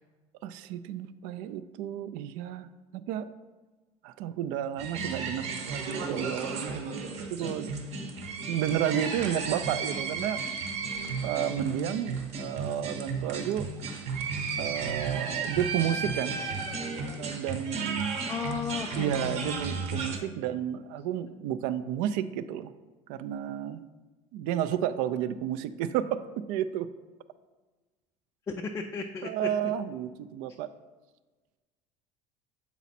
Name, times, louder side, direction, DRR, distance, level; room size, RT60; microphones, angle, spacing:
voice 1, 0.4-2.7 2.9-3.3 4.0-7.7 8.5-10.4 11.2-14.1 14.6-16.4 17.2-18.2 18.9-22.7 23.1-23.8 24.3-26.9 29.2-30.7, right 10 dB, 70° right, 13 dB, 0.4 m, -32 dB
sound 1, 4.8-20.2, right 4 dB, 50° right, 0.9 m, -34 dB
voice 2, 18.3-19.4 19.9-20.3 28.5-29.8, left 5 dB, 20° left, 4 dB, 0.3 m, -35 dB
7.0 x 4.1 x 4.1 m, 1.3 s
cardioid pair, 140°, 14 cm